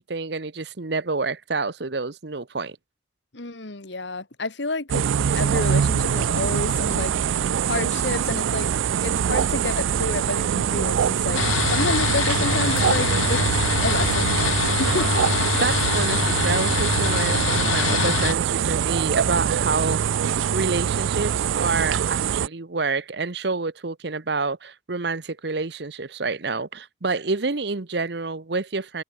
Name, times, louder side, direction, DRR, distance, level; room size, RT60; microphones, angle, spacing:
voice 1, 0.0-2.8 14.8-15.0 15.6-20.0 20.5-29.0, right 3 dB, 60° right, 1.0 m, -28 dB
voice 2, 3.3-7.4 7.6-8.7 9.0-13.4 13.8-14.4 14.8-15.1, left 2 dB, 65° left, 1.8 m, -29 dB
sound 1, 4.9-22.5, right 8 dB, 85° right, 0.4 m, -23 dB
sound 2, 11.3-18.3, left 9 dB, 85° left, 0.4 m, -25 dB
head